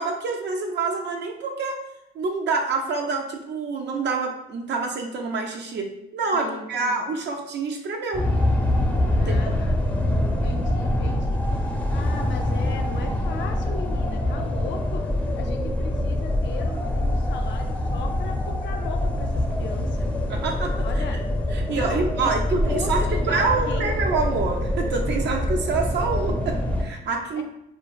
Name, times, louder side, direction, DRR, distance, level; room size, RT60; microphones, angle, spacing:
voice 1, 0.0-1.8 2.2-8.2 9.2-9.5 20.3-21.2 21.5-27.4, right 4 dB, 60° right, 2 dB, 0.4 m, -27 dB
voice 2, 6.3-7.1 9.2-9.8 10.2-11.4 11.7-15.1 15.4-20.1 20.7-21.2 21.7-22.4 22.7-23.9 27.4-27.5, left 5 dB, 70° left, 5 dB, 0.5 m, -37 dB
sound 1, 8.1-26.8, left 1 dB, 5° left, 0.4 m, -25 dB
2.4 x 2.2 x 3.1 m, 0.85 s
cardioid pair, 90°, 20 cm